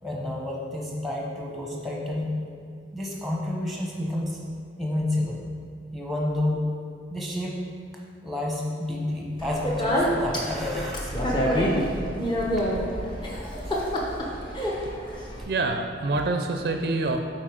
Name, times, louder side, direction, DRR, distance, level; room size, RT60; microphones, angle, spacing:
voice 1, 0.0-2.3 2.9-4.4 4.8-5.4 5.9-6.6 7.1-7.6 8.2-11.1 11.4-11.9 13.3-13.9, left 1 dB, ahead, -2 dB, 0.9 m, -30 dB
Speech, 9.4-15.4, equal, 25° left, 0.9 m, -27 dB
voice 2, 15.4-17.2, right 2 dB, 55° right, 5 dB, 0.4 m, -26 dB
7.5 x 4.4 x 5.0 m, 2.3 s
head